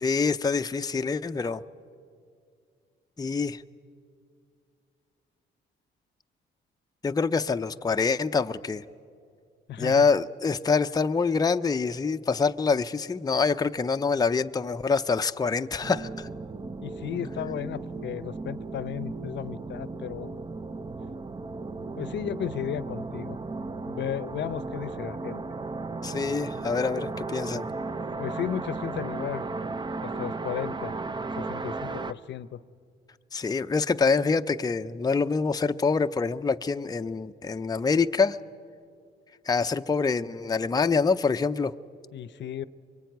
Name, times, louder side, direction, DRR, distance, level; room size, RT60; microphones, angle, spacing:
voice 1, 0.0-1.6 3.2-3.6 7.0-8.8 9.8-16.3 26.0-27.7 33.3-38.4 39.5-41.7, left 4 dB, 20° left, 8 dB, 0.6 m, -25 dB
voice 2, 9.7-10.1 16.8-20.3 22.0-23.4 23.9-25.4 28.2-29.4 30.0-30.9 31.4-32.6 42.1-42.6, left 10 dB, 65° left, 17 dB, 0.8 m, -34 dB
sound 1, 15.8-32.1, right 3 dB, 25° right, 0.7 m, -35 dB
24.0 x 23.0 x 9.3 m, 2.3 s
cardioid pair, 90°, 20 cm